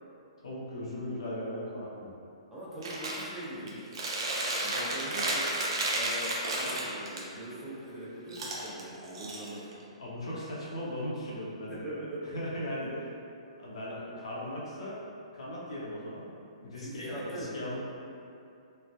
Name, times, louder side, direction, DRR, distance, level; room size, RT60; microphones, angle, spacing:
voice 1, 0.4-2.1 3.6-3.7 10.0-11.8 12.2-12.9 13.6-15.0 15.3-17.8, left 1 dB, 65° left, -7 dB, 0.7 m, -38 dB
voice 2, 2.5-3.8 4.6-5.5 5.9-9.8 11.7-12.4 12.8-13.0 16.8-17.7, right 1 dB, 5° right, -10 dB, 0.5 m, -41 dB
Chewing mastication, 2.8-3.2 3.7-7.2 8.3-9.8, right 2 dB, 50° right, 0.4 m, -32 dB
3.2 x 2.1 x 2.3 m, 2.6 s
figure-of-eight pair, 120°, 3 cm